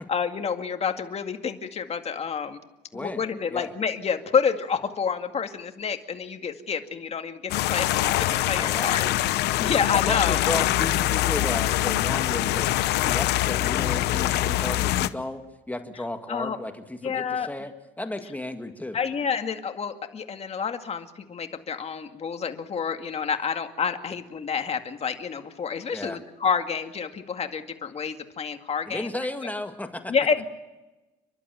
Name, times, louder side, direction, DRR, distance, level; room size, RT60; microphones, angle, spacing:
voice 1, 0.1-2.6 2.9-10.4 16.3-16.6 17.0-17.5 18.9-29.1 30.1-30.5, left 6 dB, 40° left, 6 dB, 2.1 m, -29 dB
sound 1, 7.5-15.1, left 15 dB, 80° left, 0.9 m, -24 dB
voice 2, 8.6-9.2 9.9-15.4 15.7-19.0 25.9-26.2 28.9-30.1, left 1 dB, 10° left, 6 dB, 1.8 m, -34 dB
30.0 x 12.0 x 9.1 m, 1.1 s
cardioid pair, 110°, 17 cm